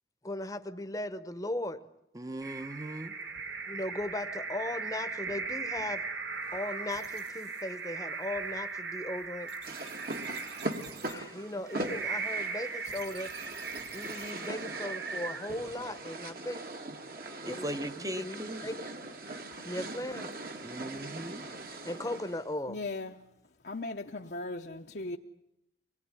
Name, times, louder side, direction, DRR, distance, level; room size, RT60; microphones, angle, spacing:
voice 1, 0.2-1.8 3.7-6.0 6.5-9.5 11.0-13.3 13.9-16.6 17.4-17.7 18.0-18.8 19.6-20.3 21.8-22.8, left 1 dB, 20° left, 0.9 m, -37 dB
voice 2, 2.1-3.1 17.5-18.6 20.6-21.4, right 1 dB, 20° right, 0.9 m, -38 dB
sound 1, 2.4-15.9, right 4 dB, 85° right, 2.8 m, -38 dB
sound 2, 6.4-14.5, right 7 dB, 70° right, 3.2 m, -53 dB
sound 3, 9.6-22.5, right 2 dB, 55° right, 1.9 m, -41 dB
voice 3, 22.7-23.2 23.6-25.2, left 2 dB, 60° left, 0.9 m, -37 dB
24.0 x 20.0 x 9.9 m
head